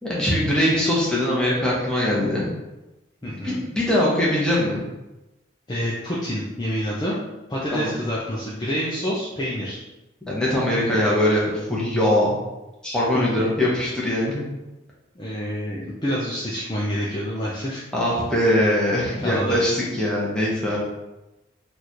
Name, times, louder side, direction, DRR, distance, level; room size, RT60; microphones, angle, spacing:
voice 1, 0.0-2.5 3.2-4.8 7.7-7.9 10.3-12.4 12.8-14.4 17.9-20.8, left 1 dB, 5° left, -6 dB, 0.8 m, -22 dB
voice 2, 3.2-3.6 5.7-7.2 7.5-9.8 13.3-13.4 15.2-17.8 19.2-19.5, equal, 20° left, -7 dB, 0.4 m, -27 dB
3.1 x 2.5 x 4.2 m, 1.0 s
head